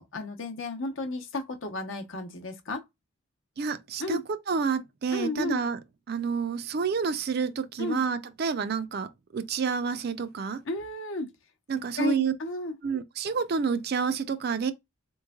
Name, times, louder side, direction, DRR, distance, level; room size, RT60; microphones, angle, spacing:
voice 1, 0.0-2.8 4.0-4.2 5.1-5.6 7.8-8.1 10.7-11.3 12.0-12.7, left 2 dB, 60° left, 0.8 m, -33 dB
voice 2, 3.6-5.8 6.1-9.1 9.3-10.6 11.7-12.3 12.8-14.7, right 5 dB, 45° right, 0.4 m, -29 dB
4.2 x 3.1 x 2.2 m
head